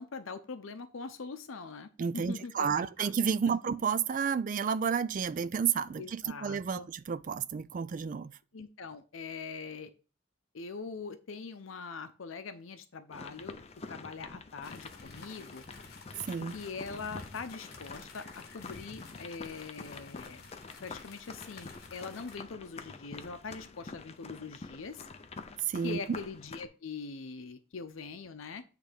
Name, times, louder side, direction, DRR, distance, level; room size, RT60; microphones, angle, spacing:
voice 1, 0.0-3.1 6.0-6.9 8.5-9.9 10.5-13.6 13.9-15.6 16.5-20.5 20.8-25.1 25.8-28.6, left 4 dB, 75° left, 0.6 m, -42 dB
voice 2, 2.0-8.3 16.3-16.6 25.7-26.0, right 6 dB, 40° right, 0.3 m, -31 dB
sound 1, 13.1-26.7, left 3 dB, 30° left, 0.5 m, -47 dB
sound 2, 14.6-22.4, left 4 dB, 50° left, 1.2 m, -53 dB
8.1 x 3.3 x 5.1 m
head